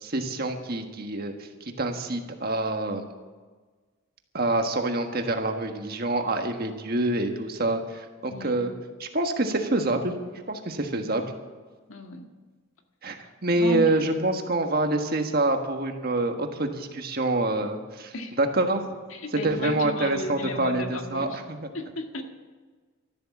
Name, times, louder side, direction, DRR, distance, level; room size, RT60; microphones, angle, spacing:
voice 1, 0.0-3.0 4.3-8.7 9.0-10.1 10.5-11.2 13.0-18.9 19.4-21.7, right 2 dB, 45° right, 5 dB, 1.5 m, -26 dB
voice 2, 8.3-8.7 11.9-12.3 13.2-14.3 18.1-18.4 19.1-21.4 21.7-22.2, left 1 dB, 80° left, 4 dB, 1.7 m, -35 dB
13.5 x 12.0 x 7.2 m, 1.4 s
head